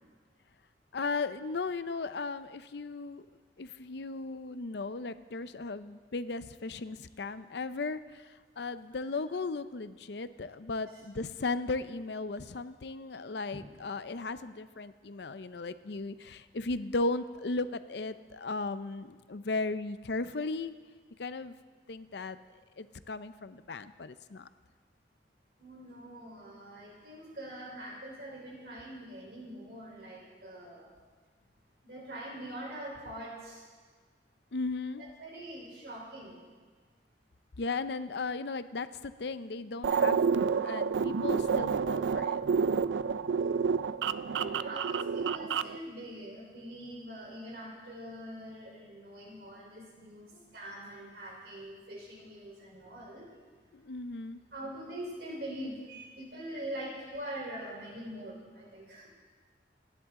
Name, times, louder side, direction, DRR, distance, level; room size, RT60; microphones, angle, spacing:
voice 1, 0.9-3.2 3.6-8.0 8.6-20.7 21.2-21.5 21.9-22.4 22.8-24.5 34.5-35.0 37.6-42.4 53.7-54.4, left 3 dB, 70° left, 12 dB, 0.6 m, -36 dB
voice 2, 25.6-30.9 31.8-33.7 35.0-36.4 44.3-53.3 54.5-59.1, right 1 dB, 60° right, -2 dB, 3.9 m, -43 dB
sound 1, 39.8-45.8, right 6 dB, 80° right, 0.4 m, -29 dB
27.5 x 11.0 x 3.7 m, 1.4 s
head